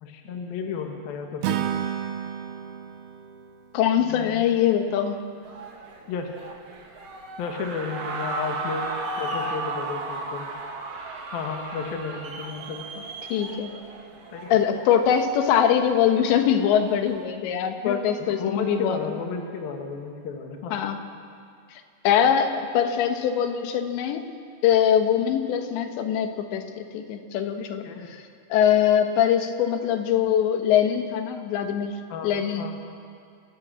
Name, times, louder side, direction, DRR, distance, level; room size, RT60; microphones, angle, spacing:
voice 1, 0.0-1.6 4.1-4.5 6.1-6.3 7.4-8.8 9.2-10.5 11.3-13.0 14.3-14.5 17.8-20.8 27.6-28.1 32.1-32.7, left 5 dB, 65° left, 3 dB, 3.0 m, -33 dB
Acoustic guitar / Strum, 1.4-4.7, right 10 dB, 75° right, 2.7 m, -32 dB
voice 2, 3.7-5.2 13.3-13.7 14.5-19.2 20.7-21.0 22.1-24.2 24.6-27.8 28.5-31.9 32.2-32.7, left 9 dB, 85° left, 6 dB, 3.5 m, -22 dB
sound 1, 5.4-17.2, right 3 dB, 50° right, 2.1 m, -35 dB
29.0 x 14.5 x 7.5 m, 2.3 s
omnidirectional pair, 5.0 m